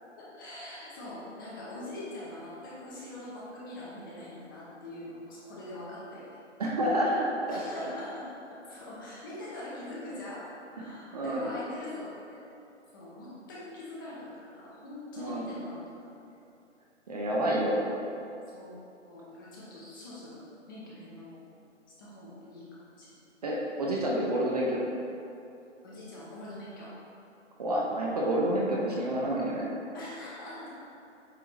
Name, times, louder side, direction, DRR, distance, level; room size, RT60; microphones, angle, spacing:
voice 1, 0.2-6.4 7.5-10.5 10.7-12.4 12.9-16.1 18.5-18.7 19.0-21.4 22.0-23.2 25.8-26.9 29.9-30.7, left 1 dB, 15° left, -7 dB, 0.8 m, -43 dB
voice 2, 6.6-7.9 11.1-11.5 15.2-15.4 17.1-17.8 23.4-24.9 27.6-29.7, right 1 dB, 35° right, -3 dB, 0.7 m, -29 dB
8.0 x 4.4 x 3.1 m, 2.7 s
hypercardioid pair, 155°, 37 cm